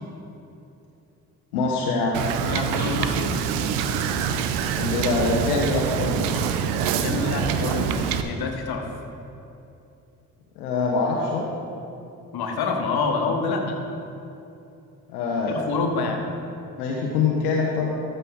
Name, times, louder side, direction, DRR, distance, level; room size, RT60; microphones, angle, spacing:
voice 1, 1.5-2.2 4.8-6.4 10.6-11.5 15.1-15.6 16.8-17.9, left 4 dB, 80° left, -2 dB, 0.9 m, -24 dB
Wind / Boat Water vehicle, 2.1-8.2, right 7 dB, 75° right, 0.6 m, -25 dB
voice 2, 2.4-3.3 7.0-8.9 12.3-13.8 15.5-16.2, left 4 dB, 55° left, 3 dB, 1.3 m, -27 dB
13.5 x 5.5 x 3.7 m, 2.8 s
hypercardioid pair, 45°, 44 cm